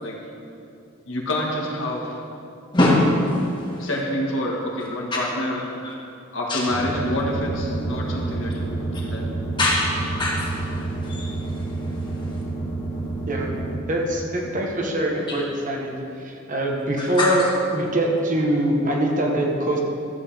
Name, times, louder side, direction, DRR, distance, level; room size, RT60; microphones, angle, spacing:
voice 1, 1.1-2.2 3.8-5.6 6.3-9.3, left 1 dB, 65° left, -3 dB, 1.7 m, -27 dB
voice 2, 2.7-3.1 5.8-5.9 6.5-6.6 9.6-10.5 11.1-11.3 17.2-17.3, left 2 dB, 20° left, -4 dB, 1.8 m, -21 dB
sound 1, 6.7-13.7, right 2 dB, 40° left, 1.9 m, -30 dB
voice 3, 13.9-15.9 16.2-17.4 17.7-19.8, right 1 dB, 40° right, -1 dB, 1.1 m, -23 dB
13.5 x 8.0 x 3.5 m, 2.6 s
head